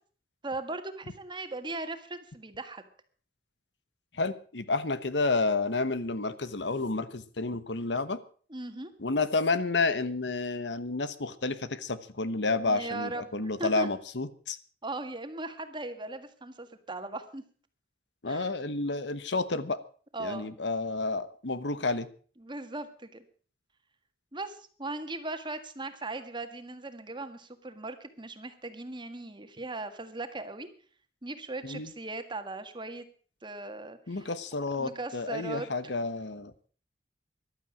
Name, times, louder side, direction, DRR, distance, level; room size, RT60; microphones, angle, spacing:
voice 1, 0.4-2.8 8.5-8.9 12.6-13.9 14.8-17.4 18.3-18.5 20.1-20.5 22.4-23.2 24.3-30.7 31.2-33.0 33.4-34.3 34.8-35.9, right 2 dB, 30° right, 8 dB, 1.7 m, -38 dB
voice 2, 4.1-8.2 9.0-14.6 18.2-19.8 20.2-22.1 31.6-31.9 34.1-36.5, left 3 dB, 90° left, 14 dB, 1.2 m, -30 dB
15.0 x 12.0 x 6.3 m, 0.43 s
head